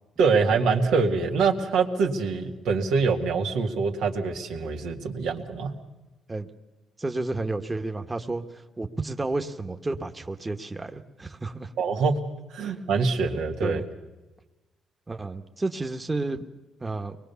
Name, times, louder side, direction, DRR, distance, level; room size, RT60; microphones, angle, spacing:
voice 1, 0.2-5.7 11.8-12.2 12.5-13.8, right 4 dB, 85° right, 2 dB, 2.1 m, -24 dB
voice 2, 7.0-11.7 12.6-12.8 13.6-13.8 15.1-16.4 16.8-17.2, right 2 dB, 20° right, 6 dB, 1.2 m, -31 dB
23.5 x 21.0 x 7.0 m, 1.1 s
cardioid pair, 90°, 0 cm